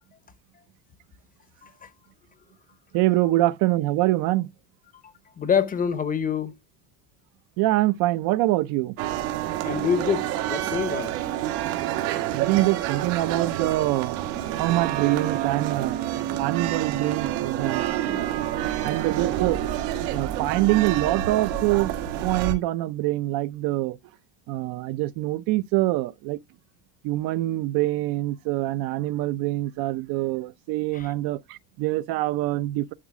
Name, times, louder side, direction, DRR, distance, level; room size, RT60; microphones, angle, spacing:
voice 1, 2.9-4.5 7.6-9.0 12.3-14.2 14.6-16.0 16.4-17.9 18.8-19.6 20.1-21.9 22.2-24.0 24.5-26.4 27.0-32.9, right 17 dB, 55° right, 0.5 m, -24 dB
voice 2, 5.4-6.5 9.6-11.2 30.9-31.1, left 7 dB, 20° left, 0.6 m, -26 dB
sound 1, 9.0-22.5, right 12 dB, 85° right, 2.3 m, -28 dB
11.0 x 4.1 x 4.7 m
cardioid pair, 165°, 44 cm